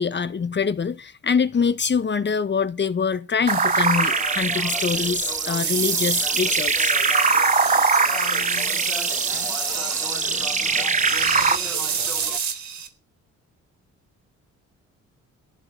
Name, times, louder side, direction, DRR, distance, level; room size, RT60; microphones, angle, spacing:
voice 1, 0.0-6.9, left 6 dB, 35° left, 1.5 m, -24 dB
sound 1, 3.5-11.6, right 4 dB, 25° right, 1.3 m, -23 dB
sound 2, 3.5-12.9, right 7 dB, 70° right, 3.7 m, -29 dB
sound 3, 3.6-12.4, equal, ahead, 3.5 m, -39 dB
voice 2, 7.6-12.3, left 12 dB, 85° left, 2.4 m, -42 dB
18.5 x 14.5 x 4.1 m
cardioid pair, 90°, 30 cm